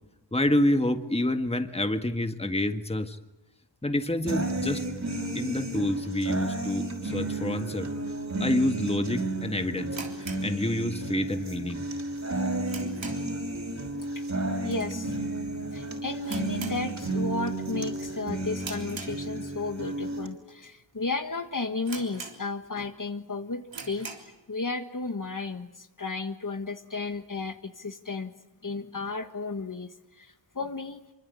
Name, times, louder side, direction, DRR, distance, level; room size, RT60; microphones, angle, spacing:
voice 1, 0.3-3.2 3.8-4.8 5.3-7.9 8.4-10.0 10.4-11.8, left 1 dB, 15° left, 7 dB, 1.7 m, -28 dB
sound 1, 4.3-20.3, right 2 dB, 40° right, 5.6 m, -32 dB
sound 2, 9.9-11.2 11.5-11.6 12.1-13.5 13.8-14.1 14.4-14.5 15.1-15.4 15.7-15.8 16.2-17.4 17.7-18.0 18.6-19.7 20.3-20.4 20.9-21.0 21.3-21.4 21.8-22.8 23.2-23.3 23.6-24.4, right 4 dB, 90° right, 3.6 m, -42 dB
voice 2, 14.6-15.2 15.7-24.1 24.5-28.3 28.6-31.0, left 3 dB, 45° left, 7 dB, 1.6 m, -33 dB
25.5 x 24.5 x 8.5 m, 1.0 s
wide cardioid pair, 65°, 44 cm